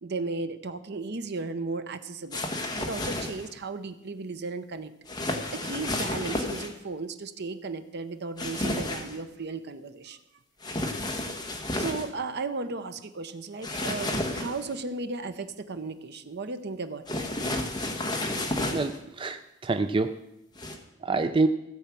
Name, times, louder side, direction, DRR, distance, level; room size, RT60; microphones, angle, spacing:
voice 1, 0.0-2.4 2.8-4.9 5.5-10.2 11.7-17.2, right 3 dB, 60° right, 10 dB, 0.8 m, -35 dB
sound 1, 2.3-3.5 5.1-6.7 8.4-9.2 10.6-12.1 13.6-14.7 17.1-19.0 20.6-20.8, left 1 dB, 20° left, 1.3 m, -31 dB
voice 2, 18.7-20.1 21.0-21.5, right 3 dB, 25° right, 8 dB, 0.4 m, -26 dB
15.5 x 7.3 x 5.9 m, 0.89 s
head